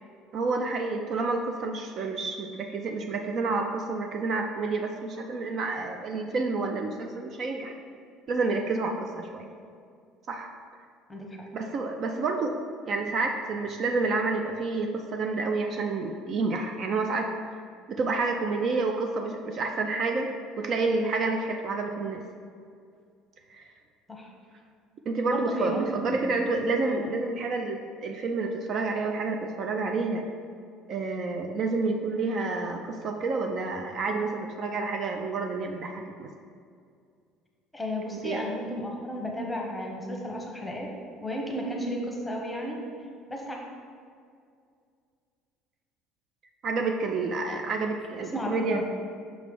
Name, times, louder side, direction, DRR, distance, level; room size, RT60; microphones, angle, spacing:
voice 1, 0.3-7.7 8.3-9.5 10.3-10.5 11.5-12.6 12.9-17.3 17.9-20.3 20.6-22.2 23.5-23.7 25.1-30.3 30.9-36.3 38.2-38.4 46.6-48.8, right 3 dB, 45° right, 4 dB, 0.4 m, -29 dB
voice 2, 11.1-11.4 24.1-24.3 25.3-26.2 26.9-27.1 37.7-40.9 41.2-42.8 43.3-43.6 48.2-48.8, equal, 5° left, -1 dB, 0.9 m, -33 dB
5.9 x 3.1 x 5.3 m, 2.3 s
cardioid pair, 130°, 0 cm